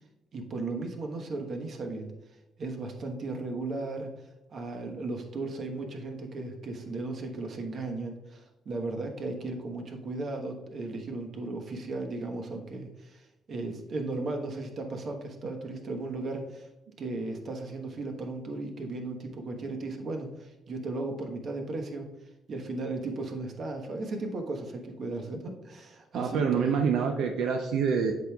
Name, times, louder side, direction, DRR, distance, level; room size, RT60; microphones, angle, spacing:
voice 1, 0.3-2.1 2.6-4.1 4.5-16.7 17.0-22.1 22.5-26.7, right 2 dB, 55° right, 3 dB, 1.2 m, -36 dB
voice 2, 26.1-28.1, right 6 dB, 85° right, 3 dB, 0.6 m, -26 dB
7.9 x 6.1 x 2.3 m, 0.98 s
cardioid pair, 90°, 0 cm